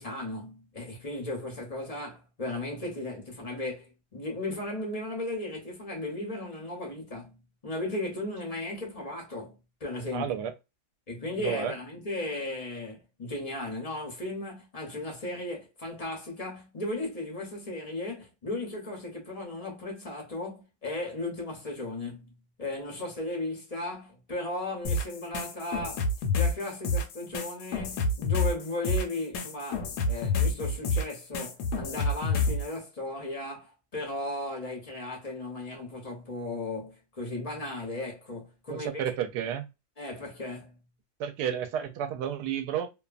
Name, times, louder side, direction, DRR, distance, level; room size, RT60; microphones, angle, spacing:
voice 1, 0.0-10.3 11.1-26.1 26.3-39.0 40.0-40.8, left 2 dB, 40° left, 0.5 m, -36 dB
voice 2, 10.1-10.5 11.4-11.7 38.7-39.7 41.2-42.9, right 9 dB, 80° right, 1.1 m, -31 dB
sound 1, 24.8-32.7, left 3 dB, 75° left, 1.2 m, -28 dB
2.9 x 2.2 x 2.4 m
omnidirectional pair, 1.8 m